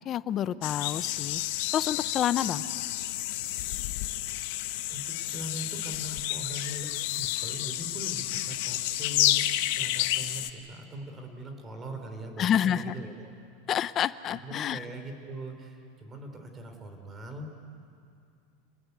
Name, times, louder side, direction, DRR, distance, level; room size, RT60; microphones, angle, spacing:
voice 1, 0.0-1.4 1.7-2.6 12.4-12.9 13.7-14.8, left 10 dB, 30° left, 14 dB, 0.7 m, -28 dB
sound 1, 0.6-10.5, left 16 dB, 65° left, 1.1 m, -30 dB
voice 2, 4.9-9.4 9.7-13.3 14.4-17.8, right 1 dB, 20° right, 5 dB, 3.6 m, -41 dB
28.5 x 19.5 x 9.5 m, 2.4 s
supercardioid pair, 150°, 0 cm